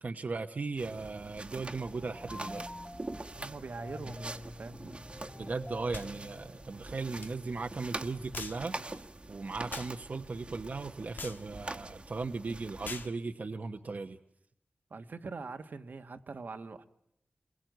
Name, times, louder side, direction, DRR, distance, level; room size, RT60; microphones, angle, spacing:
voice 1, 0.0-2.6 5.4-14.2, right 3 dB, 60° right, 5 dB, 1.1 m, -37 dB
sound 1, 0.8-13.1, right 2 dB, 35° right, 1.5 m, -45 dB
sound 2, 1.8-7.3, left 1 dB, 20° left, 1.5 m, -47 dB
voice 2, 3.3-5.0 14.9-16.8, right 4 dB, 75° right, 7 dB, 1.4 m, -43 dB
sound 3, 5.9-6.1 7.2-7.3 8.3-8.6 9.7-9.9 11.2-11.4 12.8-13.1, left 4 dB, 85° left, 1.5 m, -42 dB
28.5 x 22.0 x 9.3 m, 0.79 s
wide cardioid pair, 90°, 3 cm